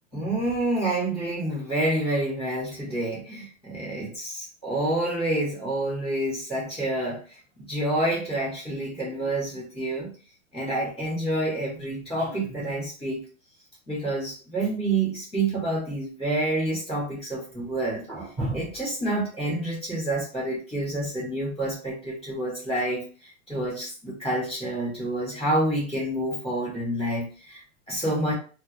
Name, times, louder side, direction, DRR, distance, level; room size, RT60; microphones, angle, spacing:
voice 1, 0.1-10.1 10.5-13.2 13.9-28.3, right 1 dB, 5° left, -16 dB, 0.3 m, -28 dB
2.1 x 2.1 x 3.4 m, 0.37 s
hypercardioid pair, 165°, 40 cm